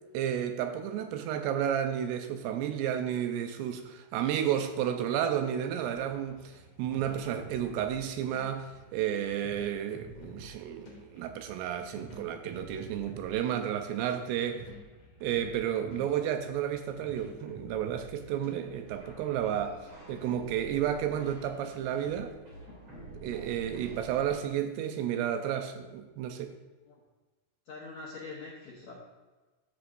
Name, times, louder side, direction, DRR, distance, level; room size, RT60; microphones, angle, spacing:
voice 1, 0.1-14.7 15.2-22.4 23.2-26.5, right 9 dB, 80° right, 2.5 m, -32 dB
sound 1, 6.1-19.6, equal, 45° left, 2.4 m, -50 dB
sound 2, 18.8-24.3, right 2 dB, 40° right, 3.9 m, -48 dB
voice 2, 27.7-28.9, left 3 dB, 75° left, 1.7 m, -43 dB
13.5 x 6.6 x 2.6 m
omnidirectional pair, 5.0 m